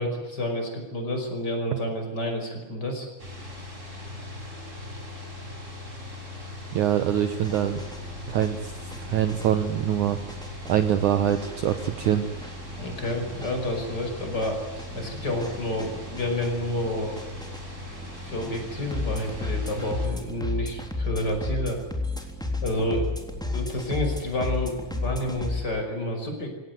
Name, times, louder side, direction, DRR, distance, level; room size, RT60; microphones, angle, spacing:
voice 1, 0.0-3.1 12.8-14.6 14.9-17.2 18.2-21.8 22.6-23.1 23.5-26.5, left 1 dB, 20° left, 3 dB, 5.7 m, -29 dB
sound 1, 3.2-20.1, left 2 dB, 15° right, 6.2 m, -40 dB
voice 2, 6.7-7.8 8.3-8.7 9.1-10.2 10.7-12.2, right 10 dB, 80° right, 9 dB, 1.7 m, -24 dB
sound 2, 7.4-25.6, left 2 dB, ahead, 2.8 m, -35 dB
27.0 x 17.5 x 9.4 m, 1.1 s
omnidirectional pair, 5.2 m